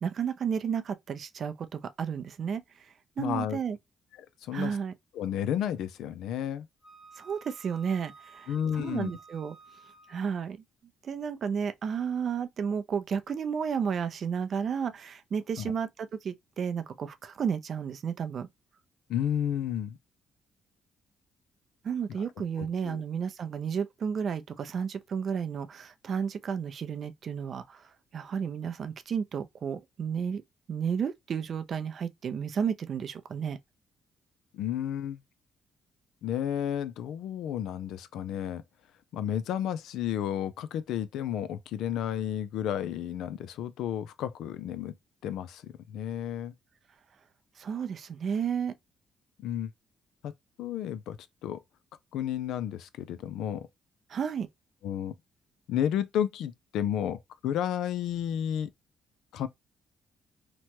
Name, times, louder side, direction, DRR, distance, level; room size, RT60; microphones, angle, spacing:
voice 1, 0.0-3.8 4.5-4.9 7.2-9.6 10.1-10.6 11.0-18.5 21.8-30.4 30.7-33.6 47.6-48.7 54.1-54.5, right 7 dB, 55° right, 0.4 m, -32 dB
voice 2, 3.2-3.6 4.4-4.7 5.2-6.7 8.5-9.1 15.6-15.7 19.1-20.0 22.6-23.0 34.5-35.2 36.2-38.6 39.1-44.9 45.2-46.5 49.4-49.7 50.2-50.3 50.6-51.2 51.4-51.6 52.1-53.7 54.8-55.1 55.7-58.7 59.3-59.5, left 10 dB, 85° left, 0.3 m, -32 dB
Wind instrument woodwind instrument, 6.8-10.4, right 4 dB, 10° left, 0.7 m, -53 dB
2.9 x 2.1 x 2.8 m
cardioid pair, 90°, 0 cm